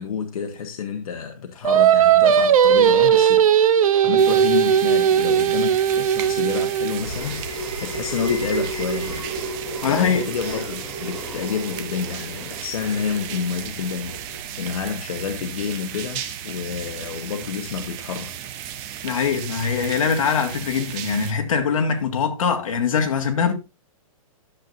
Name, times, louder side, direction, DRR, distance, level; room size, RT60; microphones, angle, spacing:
voice 1, 0.0-9.3 9.9-18.3, left 7 dB, 85° left, 1.3 m, -29 dB
Singing, 1.6-7.0, right 9 dB, 75° right, 0.9 m, -17 dB
sound 1, 4.2-21.3, right 10 dB, 20° right, 0.5 m, -35 dB
sound 2, 6.1-14.9, right 2 dB, 10° left, 3.9 m, -33 dB
voice 2, 9.8-10.2 19.0-23.5, left 6 dB, 70° left, 2.0 m, -22 dB
12.0 x 7.4 x 2.6 m
hypercardioid pair, 175°, 18 cm